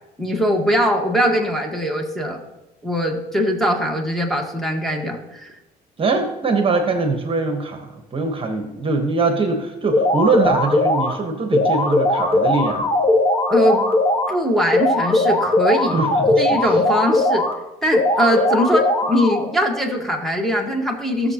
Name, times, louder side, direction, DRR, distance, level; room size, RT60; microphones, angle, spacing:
voice 1, 0.2-2.4 2.8-5.5 13.5-13.8 14.3-16.0 16.4-17.5 17.8-21.3, equal, ahead, 1 dB, 1.5 m, -21 dB
voice 2, 6.0-12.9 15.9-16.6, right 3 dB, 30° right, 4 dB, 1.2 m, -22 dB
sound 1, 9.9-11.1 11.5-14.3 14.7-17.5 17.9-19.5, left 2 dB, 35° left, 1.5 m, -19 dB
16.0 x 7.0 x 2.9 m, 0.98 s
cardioid pair, 110°, 17 cm